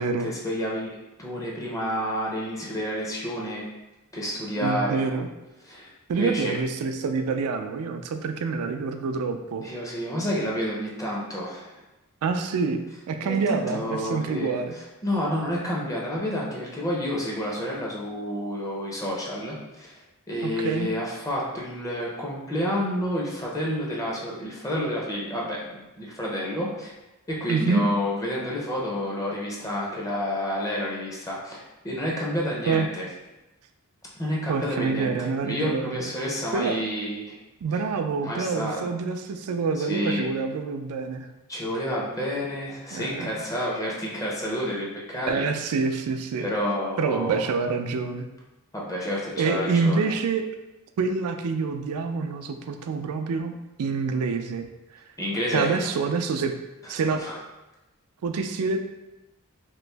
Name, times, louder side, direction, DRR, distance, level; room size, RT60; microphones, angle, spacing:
voice 1, 0.2-3.6 4.1-5.1 5.6-6.5 9.6-11.7 13.2-20.0 20.3-26.9 27.3-33.1 34.2-37.4 38.2-38.9 39.8-40.3 41.5-45.5 46.4-47.5 48.7-50.1 55.2-55.9 57.2-57.4, equal, 15° left, -4 dB, 0.5 m, -29 dB
voice 2, 4.6-5.3 6.1-9.6 12.2-14.7 20.4-20.9 27.5-27.8 32.7-32.9 34.5-36.1 36.5-36.8 37.6-41.3 42.9-43.3 45.3-46.5 47.0-48.3 49.4-50.4 51.0-53.5 53.8-54.7 55.5-56.5 56.9-57.2 58.2-58.8, right 4 dB, 80° right, 7 dB, 0.3 m, -27 dB
3.0 x 2.5 x 3.3 m, 1.0 s
head